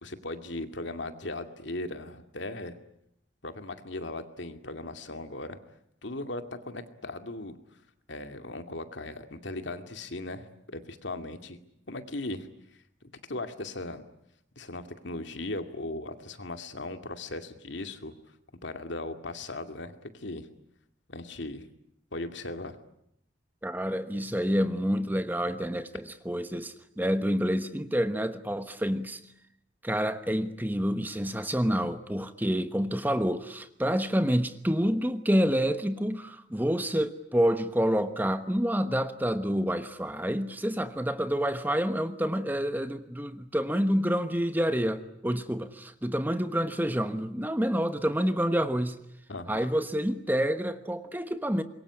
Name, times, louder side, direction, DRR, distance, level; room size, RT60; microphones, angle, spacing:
voice 1, 0.0-2.8 3.4-5.6 6.0-7.6 8.1-11.6 11.9-12.5 13.2-14.0 14.6-18.1 18.6-20.5 21.1-21.6 22.1-22.8 49.3-49.7, left 2 dB, 70° left, 2.3 m, -38 dB
voice 2, 23.6-29.2 29.8-49.0 49.5-51.6, equal, 10° right, 1.1 m, -28 dB
26.0 x 22.5 x 10.0 m
head